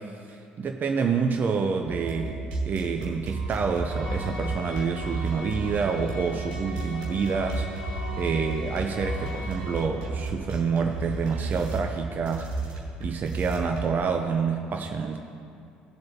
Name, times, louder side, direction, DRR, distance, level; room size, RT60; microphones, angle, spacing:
voice 1, 0.3-7.7 8.1-12.5 13.0-15.2, right 5 dB, 40° right, 3 dB, 0.8 m, -28 dB
sound 1, 1.8-13.9, right 3 dB, 70° right, 2.1 m, -33 dB
sound 2, 3.8-9.8, left 2 dB, 80° left, 2.1 m, -41 dB
sound 3, 6.6-13.3, right 4 dB, 55° left, 1.6 m, -51 dB
18.0 x 7.6 x 2.9 m, 2.5 s
figure-of-eight pair, 55°, 5 cm